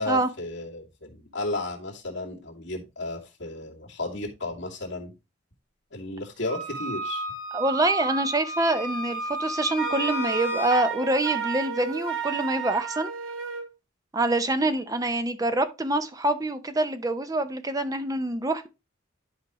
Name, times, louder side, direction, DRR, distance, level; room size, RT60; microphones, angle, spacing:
voice 1, 0.0-5.1 5.9-7.2, left 2 dB, 60° left, 2.4 m, -33 dB
Wind instrument woodwind instrument, 6.5-10.8, right 1 dB, 40° right, 2.6 m, -32 dB
voice 2, 7.5-13.1 14.1-18.7, right 2 dB, 15° right, 0.6 m, -26 dB
Wind instrument woodwind instrument 2, 9.8-13.7, right 7 dB, 75° right, 1.2 m, -32 dB
11.0 x 5.0 x 3.0 m
head